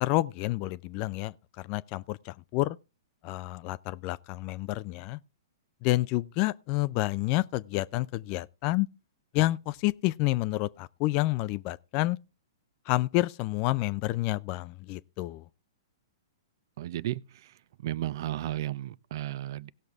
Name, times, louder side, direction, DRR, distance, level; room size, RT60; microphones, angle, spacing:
voice 1, 0.0-2.8 3.2-5.2 5.8-8.9 9.3-12.2 12.9-15.4, left 18 dB, 40° left, 0.4 m, -29 dB
voice 2, 16.8-17.5 17.8-19.7, right 13 dB, 60° right, 0.5 m, -34 dB
17.5 x 6.5 x 3.6 m
hypercardioid pair, 120°, 2 cm